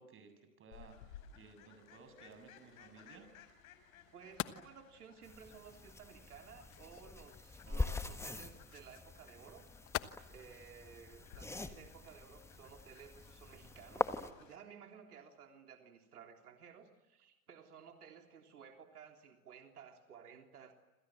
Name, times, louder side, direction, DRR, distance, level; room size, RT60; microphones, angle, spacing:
voice 1, 0.0-3.3 7.6-8.0, right 4 dB, 30° right, 8 dB, 7.5 m, -58 dB
Fowl, 0.7-14.6, left 8 dB, 65° left, 6.2 m, -61 dB
sound 1, 2.7-10.1, left 13 dB, 30° left, 1.3 m, -49 dB
voice 2, 4.1-9.7 10.3-20.7, right 7 dB, 85° right, 4 dB, 3.5 m, -56 dB
sound 2, 5.2-14.3, left 2 dB, 5° left, 1.7 m, -43 dB
28.0 x 27.0 x 7.6 m, 0.99 s
hypercardioid pair, 110°, 44 cm